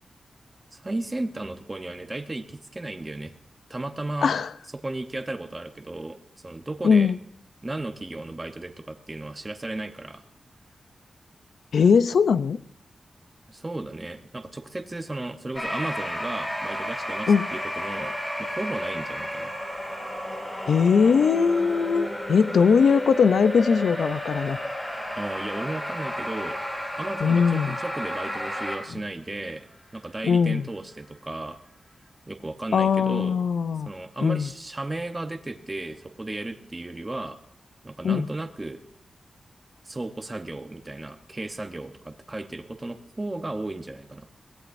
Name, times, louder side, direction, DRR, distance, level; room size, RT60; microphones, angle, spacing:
voice 1, 0.7-3.3 3.7-4.3 4.7-6.2 6.4-7.1 7.6-10.2 13.5-18.1 18.4-19.5 25.2-26.6 27.0-29.7 29.9-31.6 32.3-33.4 33.9-37.4 37.8-38.8 39.8-44.3, right 2 dB, 20° right, 7 dB, 0.9 m, -34 dB
voice 2, 6.8-7.2 11.7-12.6 17.3-17.5 20.7-24.6 27.2-27.8 30.2-30.7 32.7-33.9 34.2-34.5 38.0-38.3, left 6 dB, 85° left, 14 dB, 0.5 m, -20 dB
sound 1, 15.5-28.7, equal, 15° left, 4.5 m, -32 dB
22.0 x 17.0 x 2.6 m, 0.71 s
wide cardioid pair, 175°, 0 cm